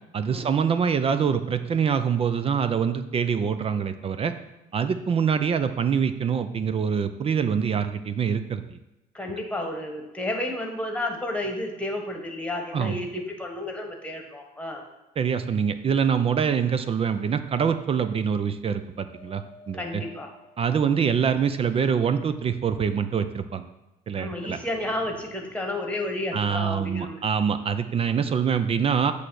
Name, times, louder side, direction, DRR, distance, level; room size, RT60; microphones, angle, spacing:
voice 1, 0.1-4.3 4.7-8.8 12.7-13.0 15.2-20.0 20.6-23.6 24.1-24.6 26.3-29.1, right 7 dB, 35° right, 10 dB, 0.5 m, -25 dB
voice 2, 9.1-14.8 19.7-20.3 24.2-27.2, left 1 dB, 5° left, 2 dB, 1.4 m, -31 dB
sound 1, 19.1-21.1 22.2-23.5 24.4-25.8, right 1 dB, 70° right, 1.5 m, -50 dB
8.3 x 3.3 x 6.3 m, 1.0 s
cardioid pair, 110°, 17 cm